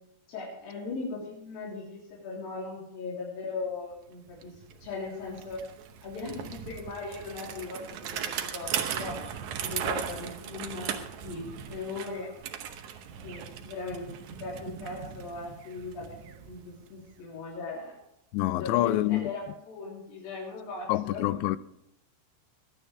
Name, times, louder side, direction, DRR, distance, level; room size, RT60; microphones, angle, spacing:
voice 1, 0.3-4.6 4.8-5.6 6.0-9.2 9.6-10.9 11.2-12.3 13.2-16.1 16.5-17.9 18.6-21.5, left 3 dB, 60° left, 5.2 m, -38 dB
Bicycle, 3.9-4.0 4.3-17.2, right 8 dB, 80° right, 1.7 m, -38 dB
voice 2, 18.3-19.3 20.9-21.6, left 16 dB, 90° left, 2.8 m, -26 dB
19.5 x 11.5 x 3.4 m
omnidirectional pair, 4.9 m